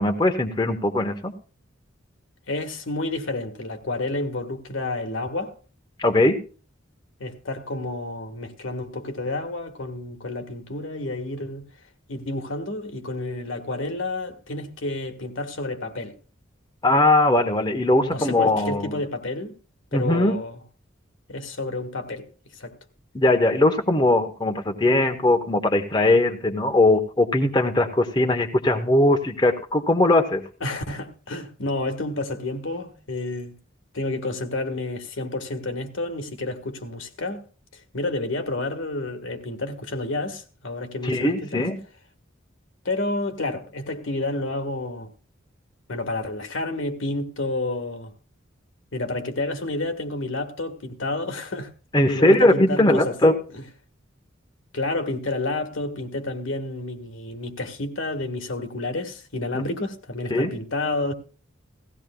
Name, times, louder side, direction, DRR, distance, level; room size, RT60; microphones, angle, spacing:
voice 1, 0.0-1.3 6.0-6.4 16.8-19.0 19.9-20.3 23.1-30.4 41.0-41.8 51.9-53.4 59.5-59.6 60.3-60.5, left 1 dB, 20° left, 0.9 m, -20 dB
voice 2, 2.5-5.5 7.2-11.6 12.1-16.2 18.0-19.6 19.9-20.6 21.3-22.3 22.5-22.7 30.6-33.5 33.9-37.5 37.7-41.7 42.8-45.1 45.9-48.1 48.9-51.7 52.1-53.1 54.7-61.1, left 2 dB, 75° left, 1.5 m, -30 dB
17.5 x 15.5 x 2.2 m
head